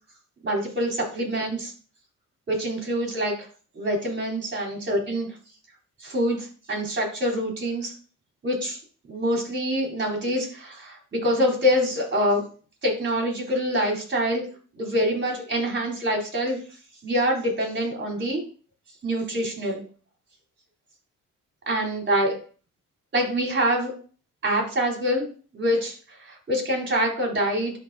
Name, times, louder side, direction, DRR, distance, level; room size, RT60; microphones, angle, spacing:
voice 1, 0.4-1.7 2.5-3.5 3.8-5.3 6.0-7.9 8.4-8.8 9.1-12.4 12.8-14.5 14.7-16.6 17.0-18.4 19.0-19.8 21.7-22.4 23.1-23.9 24.4-25.3 25.5-25.9 26.2-27.7, equal, 35° right, 0 dB, 4.2 m, -25 dB
12.0 x 4.4 x 2.8 m, 0.38 s
cardioid pair, 90°, 30 cm